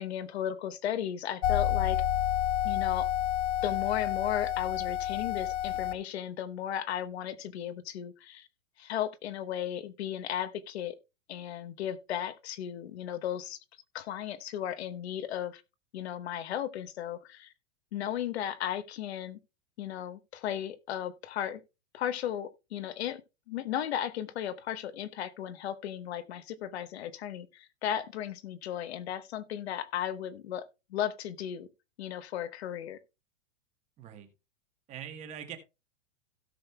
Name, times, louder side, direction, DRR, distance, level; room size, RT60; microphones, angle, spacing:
voice 1, 0.0-2.0 2.6-3.1 3.6-8.5 8.8-10.9 11.3-13.6 13.9-15.6 15.9-17.5 17.9-19.4 19.8-21.6 21.9-23.2 23.5-31.7 32.0-33.0, left 10 dB, 60° left, 1.2 m, -35 dB
sound 1, 1.4-5.9, left 11 dB, 30° left, 0.6 m, -29 dB
voice 2, 34.0-34.3 34.9-35.6, right 9 dB, 20° right, 1.3 m, -42 dB
17.0 x 6.4 x 2.3 m
supercardioid pair, 165°, 37 cm